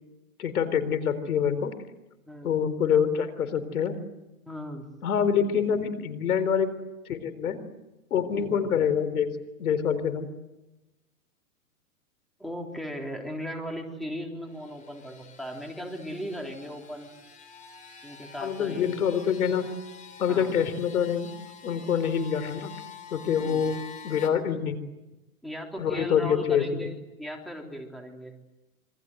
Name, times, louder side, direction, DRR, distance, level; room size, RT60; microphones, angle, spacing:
voice 1, 0.4-1.7 2.4-4.0 5.0-6.7 7.1-7.6 8.1-9.3 9.6-10.3 18.4-19.7 20.2-21.3 21.6-22.7 23.1-23.8 24.0-24.8 25.8-26.9, left 7 dB, 75° left, 13 dB, 4.2 m, -26 dB
voice 2, 4.5-4.9 8.3-8.5 12.4-17.1 18.0-18.9 20.3-20.5 23.3-23.6 25.4-28.3, equal, ahead, 1 dB, 3.5 m, -37 dB
sound 1, 14.3-24.3, left 6 dB, 15° left, 3.6 m, -47 dB
27.0 x 24.5 x 8.0 m, 1.0 s
hypercardioid pair, 140°, 44 cm